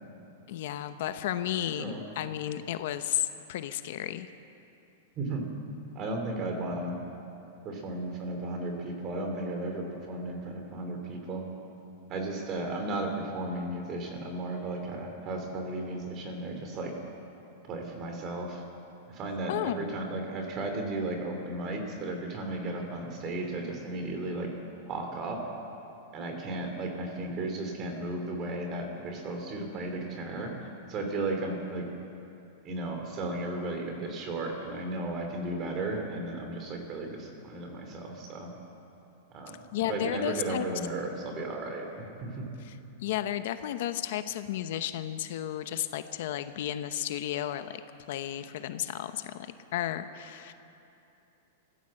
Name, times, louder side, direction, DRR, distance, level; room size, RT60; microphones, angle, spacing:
voice 1, 0.5-4.3 19.5-19.9 39.7-40.7 42.6-47.8 48.1-50.5, left 12 dB, 50° left, 10 dB, 0.8 m, -33 dB
voice 2, 5.2-5.5 5.9-6.9 7.6-11.5 12.1-16.9 17.6-18.6 19.1-24.5 24.9-25.5 26.1-31.9 32.6-38.5 39.3-39.6 39.9-42.5, right 2 dB, 25° right, 3 dB, 2.9 m, -34 dB
24.5 x 14.5 x 7.7 m, 2.8 s
supercardioid pair, 170°, 0 cm